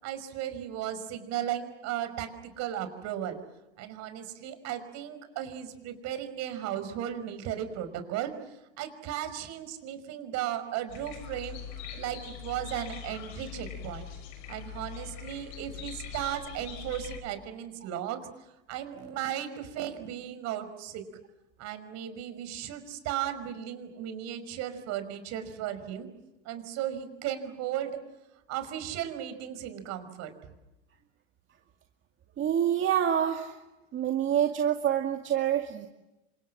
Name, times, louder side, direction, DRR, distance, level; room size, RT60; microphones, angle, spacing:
voice 1, 0.0-3.4 3.8-8.3 8.8-11.6 11.9-14.1 14.5-18.2 18.7-21.0 21.6-26.1 26.5-28.0 28.5-30.3, right 11 dB, 55° right, 10 dB, 5.5 m, -35 dB
sound 1, 10.9-17.2, left 8 dB, 55° left, 6.9 m, -42 dB
voice 2, 32.4-33.6 33.9-35.9, right 9 dB, 35° right, 3 dB, 2.3 m, -27 dB
29.5 x 26.0 x 7.6 m, 0.98 s
hypercardioid pair, 105°, 33 cm